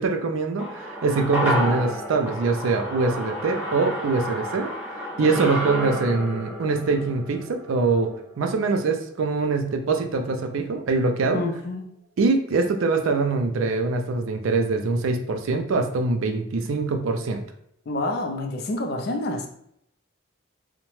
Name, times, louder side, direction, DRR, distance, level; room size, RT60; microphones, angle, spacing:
voice 1, 0.0-4.7 5.2-11.4 12.2-17.4, right 3 dB, 70° right, 5 dB, 0.4 m, -23 dB
sound 1, 0.6-9.1 9.4-9.5, equal, 10° right, 0.5 m, -31 dB
voice 2, 11.3-11.9 17.9-19.5, left 2 dB, 50° left, 3 dB, 0.4 m, -28 dB
2.8 x 2.1 x 3.0 m, 0.72 s
head